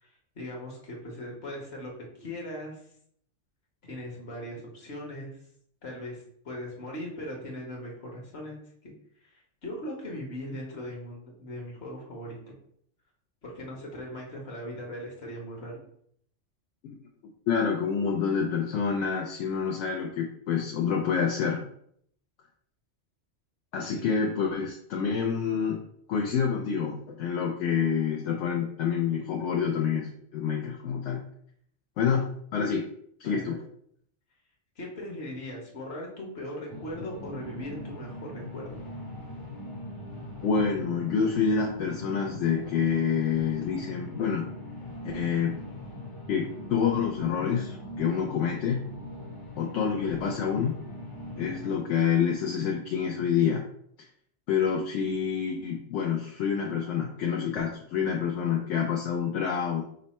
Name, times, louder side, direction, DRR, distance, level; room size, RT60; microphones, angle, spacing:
voice 1, 0.0-2.8 3.8-5.3 5.8-8.9 9.2-12.5 13.4-15.8 23.9-24.3 33.2-33.6 34.8-38.8, left 1 dB, 60° left, -1 dB, 1.4 m, -39 dB
voice 2, 17.5-21.6 23.7-25.8 26.1-31.2 32.0-32.2 32.5-32.9 33.2-33.6 40.4-44.4 45.1-45.6 46.3-48.8 49.6-50.7 51.4-53.6 54.5-59.8, left 7 dB, 80° left, 0 dB, 0.9 m, -27 dB
sound 1, 36.7-51.8, left 1 dB, 25° left, 0.6 m, -40 dB
5.3 x 2.1 x 4.1 m, 0.67 s
omnidirectional pair, 1.2 m